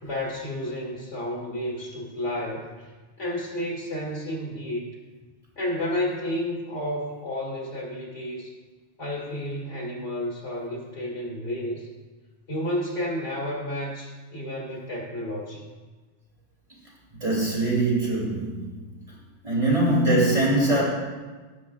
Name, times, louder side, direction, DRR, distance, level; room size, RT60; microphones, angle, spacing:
voice 1, 0.0-2.9 3.2-4.9 5.6-8.5 9.0-11.9 12.5-15.6, left 1 dB, 85° left, -4 dB, 2.6 m, -31 dB
voice 2, 17.2-18.8 19.4-20.8, right 2 dB, 30° right, -7 dB, 3.5 m, -22 dB
16.5 x 6.9 x 2.5 m, 1.3 s
omnidirectional pair, 1.2 m